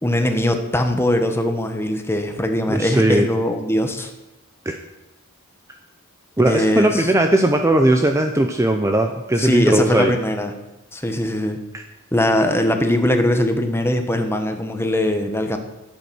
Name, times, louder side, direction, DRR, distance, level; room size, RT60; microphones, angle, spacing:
voice 1, 0.0-4.1 6.4-7.1 9.4-10.5 10.9-11.6 12.1-15.6, left 1 dB, 10° left, 6 dB, 1.2 m, -21 dB
voice 2, 2.7-3.3 4.7-4.8 6.4-10.1 11.7-11.8, right 1 dB, 15° right, 5 dB, 0.7 m, -18 dB
12.5 x 8.5 x 6.3 m, 1.0 s
head